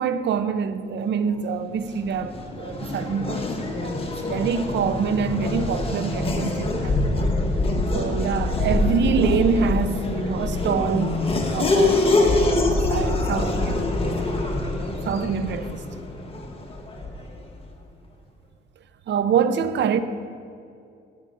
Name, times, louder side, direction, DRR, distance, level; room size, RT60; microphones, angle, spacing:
voice 1, 0.0-7.3 7.9-11.2 11.5-14.5 15.0-15.8 19.1-20.0, right 6 dB, 65° right, 0.7 m, -26 dB
Race car auto racing / Accelerating revving vroom, 1.8-17.4, left 2 dB, 30° left, 1.5 m, -25 dB
12.0 x 6.5 x 5.5 m
cardioid pair, 90°, 20 cm